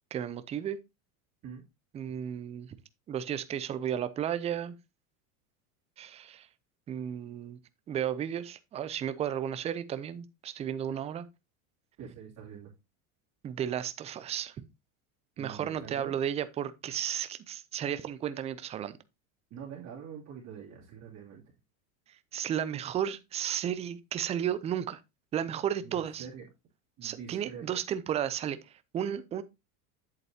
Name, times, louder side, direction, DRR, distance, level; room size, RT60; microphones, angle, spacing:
voice 1, 0.1-0.8 1.9-2.7 3.1-4.8 6.0-6.5 6.9-7.6 7.9-11.2 13.4-14.6 15.4-19.0 22.3-25.0 25.3-26.2 27.0-29.4, right 9 dB, 15° right, 0.4 m, -33 dB
voice 2, 12.0-12.7 15.4-16.1 19.5-21.4 25.8-26.5 27.0-27.6, right 7 dB, 35° right, 2.8 m, -45 dB
8.1 x 7.6 x 2.7 m
supercardioid pair, 135°, 44 cm